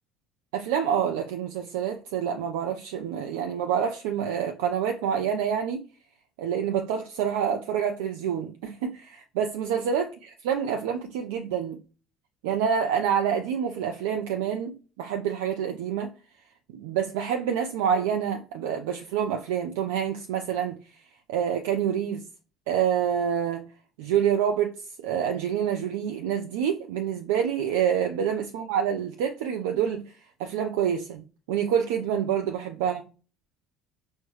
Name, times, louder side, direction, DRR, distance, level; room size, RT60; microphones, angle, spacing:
voice 1, 0.5-5.8 6.4-11.8 12.4-16.1 16.7-20.8 21.3-22.2 22.7-23.6 24.0-24.7 25.0-30.0 30.4-33.1, right 8 dB, 80° right, 0.4 m, -27 dB
4.7 x 2.1 x 3.1 m
hypercardioid pair, 70°, 0 cm